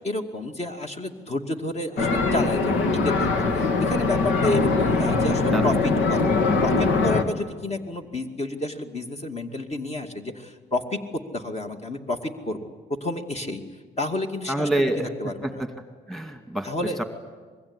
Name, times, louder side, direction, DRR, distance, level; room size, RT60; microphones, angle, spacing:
voice 1, 0.0-5.7 6.1-6.3 6.6-11.0 11.3-13.6 14.0-14.7 15.2-15.6 16.6-17.0, left 2 dB, 35° left, 4 dB, 2.5 m, -30 dB
sound 1, 2.0-7.2, left 3 dB, 80° left, 2.4 m, -22 dB
voice 2, 14.5-15.1 15.4-15.7 16.1-16.7 17.0-17.1, right 1 dB, ahead, 6 dB, 2.3 m, -26 dB
24.5 x 22.0 x 9.8 m, 1.5 s
cardioid pair, 90°, 20 cm